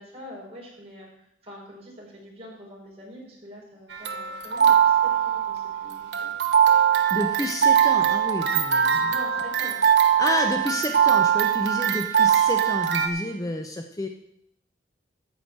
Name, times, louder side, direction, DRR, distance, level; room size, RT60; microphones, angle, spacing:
voice 1, 0.0-6.4 9.1-9.8 11.3-11.5, equal, 35° right, -4 dB, 5.0 m, -44 dB
sound 1, 3.9-13.1, right 9 dB, 70° right, 1.1 m, -21 dB
voice 2, 7.1-9.1 10.2-14.1, left 1 dB, 20° left, 4 dB, 0.7 m, -30 dB
13.5 x 5.0 x 7.7 m, 0.79 s
head